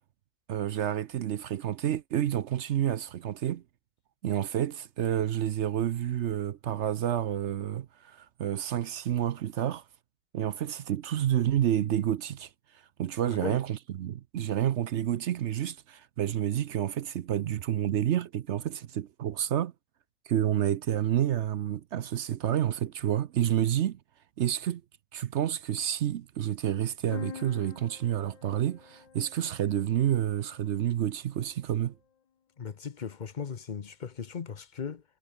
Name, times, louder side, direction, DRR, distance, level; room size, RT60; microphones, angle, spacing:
voice 1, 0.5-3.6 4.2-9.8 10.3-12.5 13.0-19.7 20.3-24.0 24.4-24.8 25.1-32.0, right 11 dB, 60° right, 0.8 m, -29 dB
voice 2, 13.3-13.6 32.6-35.0, left 6 dB, 40° left, 0.8 m, -37 dB
sound 1, 27.1-30.9, left 8 dB, 75° left, 0.3 m, -46 dB
omnidirectional pair, 1.5 m